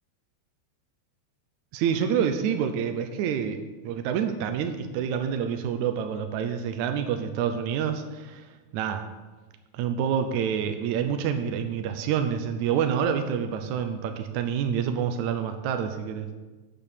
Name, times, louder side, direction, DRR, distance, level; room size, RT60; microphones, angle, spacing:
voice 1, 1.7-8.5 8.7-9.0 9.7-16.4, right 8 dB, 80° right, 7 dB, 2.0 m, -27 dB
7.8 x 6.9 x 6.7 m, 1.2 s
omnidirectional pair, 3.4 m